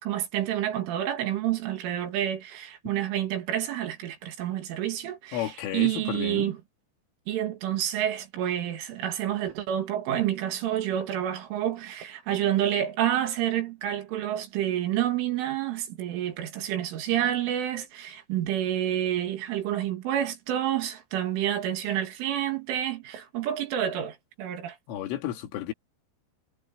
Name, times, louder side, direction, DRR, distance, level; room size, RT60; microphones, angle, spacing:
voice 1, 0.0-6.6 7.3-24.8, right 11 dB, 80° right, 4.9 m, -29 dB
voice 2, 5.3-6.5 24.9-25.7, left 12 dB, 90° left, 4.7 m, -32 dB
omnidirectional pair, 5.6 m